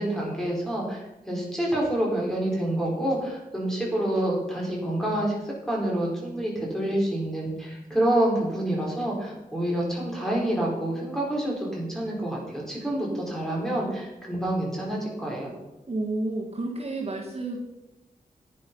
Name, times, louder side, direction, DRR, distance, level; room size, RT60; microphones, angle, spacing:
voice 1, 0.0-15.5, right 1 dB, 5° left, -3 dB, 4.5 m, -27 dB
voice 2, 15.9-17.6, right 2 dB, 45° right, -1 dB, 1.8 m, -30 dB
10.5 x 9.6 x 5.5 m, 0.97 s
wide cardioid pair, 115°, 15 cm